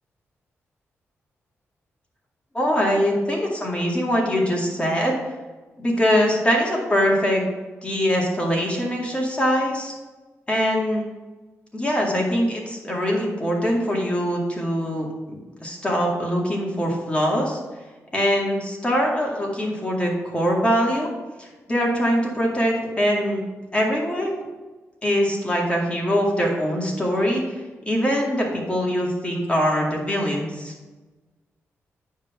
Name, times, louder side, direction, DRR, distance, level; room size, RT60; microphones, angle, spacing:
voice 1, 2.5-5.1 5.8-7.4 7.8-9.9 10.5-11.0 11.7-17.6 18.1-21.1 21.4-23.4 23.7-24.4 25.0-27.6 27.9-30.7, equal, 20° left, -2 dB, 2.2 m, -23 dB
9.6 x 3.8 x 6.1 m, 1.2 s
cardioid pair, 60°, 5 cm